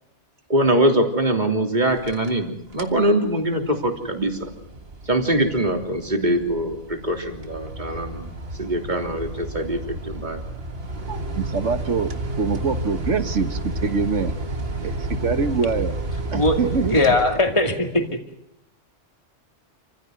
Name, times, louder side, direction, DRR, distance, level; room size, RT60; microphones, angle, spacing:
voice 1, 0.5-4.5 5.1-8.3 8.6-10.4, right 1 dB, 40° right, 3 dB, 3.4 m, -23 dB
sound 1, 1.9-2.4 2.7-3.1 3.5-17.8, right 1 dB, 55° right, 2.0 m, -31 dB
voice 2, 11.1-12.1 12.4-14.3 14.8-14.9 15.2-16.0 16.3-17.0, right 5 dB, 80° right, 10 dB, 1.8 m, -24 dB
voice 3, 16.3-18.0, left 2 dB, 25° left, 4 dB, 2.5 m, -20 dB
28.0 x 16.0 x 9.5 m, 0.80 s
omnidirectional pair, 1.2 m